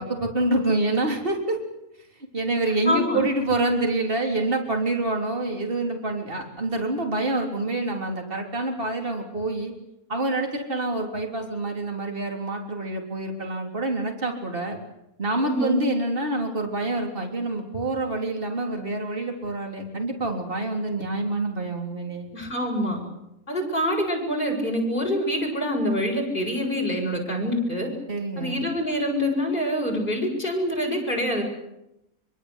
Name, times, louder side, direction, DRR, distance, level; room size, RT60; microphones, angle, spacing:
voice 1, 0.0-1.6 2.3-9.7 10.1-14.8 15.2-22.3 28.1-28.6, right 2 dB, 35° right, 2 dB, 3.9 m, -27 dB
voice 2, 2.9-3.2 15.4-15.8 22.3-23.0 23.5-27.9 28.4-31.4, equal, 35° left, 1 dB, 7.9 m, -25 dB
24.5 x 24.5 x 8.2 m, 0.86 s
omnidirectional pair, 1.6 m